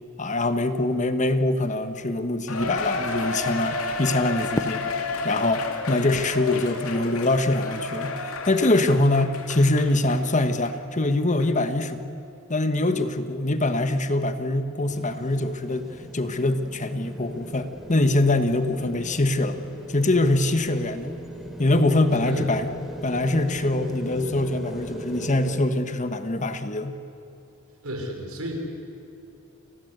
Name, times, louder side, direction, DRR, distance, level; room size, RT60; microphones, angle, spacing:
voice 1, 0.2-4.9 5.2-8.1 8.5-12.2 12.5-19.6 19.9-21.1 21.6-22.7 23.0-26.9, left 2 dB, 35° left, 9 dB, 1.3 m, -23 dB
Cheering, 2.5-10.3 10.7-10.8 11.4-11.5, left 3 dB, 75° left, 2.5 m, -31 dB
Fireworks, 4.5-7.6, left 1 dB, 15° left, 0.5 m, -37 dB
sound 1, 14.9-25.6, right 1 dB, ahead, 3.6 m, -39 dB
voice 2, 27.8-28.5, right 1 dB, 85° right, 2 dB, 5.5 m, -33 dB
29.5 x 20.5 x 8.1 m, 2.9 s
head